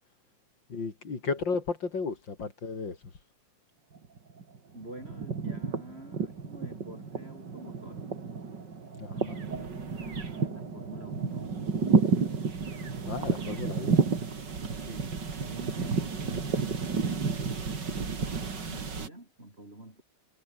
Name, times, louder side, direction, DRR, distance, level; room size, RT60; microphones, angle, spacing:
voice 1, 0.7-3.0 9.0-9.4 13.1-14.0, left 4 dB, 90° left, 4.1 m, -34 dB
sound 1, 4.0-4.6 4.8-19.1, right 5 dB, 70° right, 3.5 m, -31 dB
voice 2, 4.7-8.1 9.1-11.5 14.8-17.3 18.0-20.0, right 1 dB, 30° right, 7.7 m, -47 dB
omnidirectional pair, 2.0 m